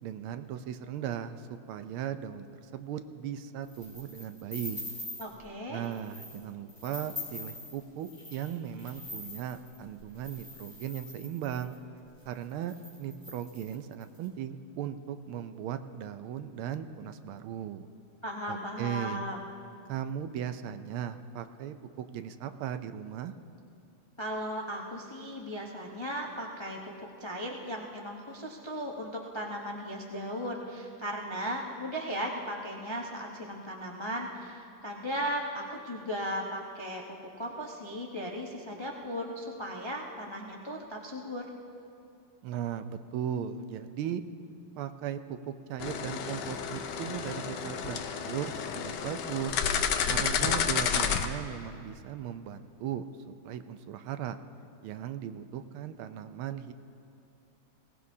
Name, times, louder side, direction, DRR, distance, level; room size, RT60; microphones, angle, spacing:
voice 1, 0.0-4.8 5.7-11.8 12.2-17.9 18.5-19.2 19.9-23.3 42.4-44.2 44.8-49.6 50.1-54.4 54.8-56.7, right 9 dB, 85° right, 10 dB, 1.5 m, -37 dB
sound 1, 3.7-5.4 5.8-6.4 6.7-11.7 12.3-12.4 12.6-14.2, left 2 dB, 15° right, 4.0 m, -43 dB
voice 2, 5.2-5.8 18.2-19.4 24.2-41.5, equal, 45° left, -1 dB, 0.3 m, -37 dB
sound 2, 45.8-51.3, left 7 dB, 65° left, 1.2 m, -31 dB
21.5 x 18.0 x 2.8 m, 2.6 s
omnidirectional pair, 2.3 m